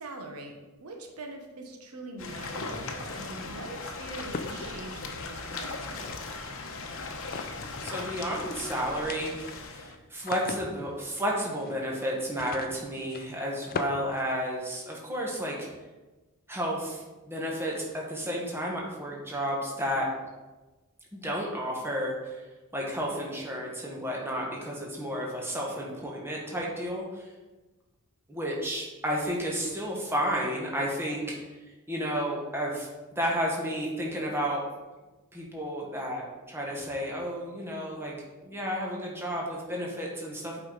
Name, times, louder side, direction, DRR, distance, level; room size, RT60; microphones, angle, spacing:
voice 1, 0.0-6.1, right 2 dB, 80° right, 2 dB, 1.0 m, -43 dB
sound 1, 2.2-9.9, left 3 dB, 65° left, 0.9 m, -38 dB
sound 2, 4.1-6.6 7.2-8.1 8.4-8.5 8.8-14.9, left 4 dB, 40° left, 0.4 m, -41 dB
voice 2, 7.8-15.7 16.5-20.1 21.1-22.4 22.7-27.3 28.3-31.4 31.9-34.6 35.3-38.1 38.4-40.6, equal, 10° right, -3 dB, 1.4 m, -32 dB
8.2 x 4.9 x 4.0 m, 1.2 s
head